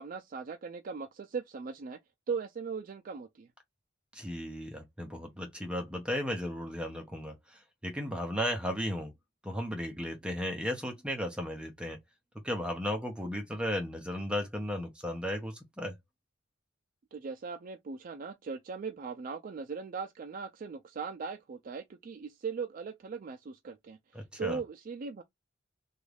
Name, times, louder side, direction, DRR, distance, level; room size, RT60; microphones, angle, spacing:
voice 1, 0.0-2.0 2.3-3.5 17.1-25.2, right 5 dB, 45° right, 0.3 m, -39 dB
voice 2, 4.1-9.1 9.4-12.0 12.4-15.9 24.1-24.6, equal, 5° right, 0.6 m, -35 dB
3.0 x 2.4 x 3.3 m
head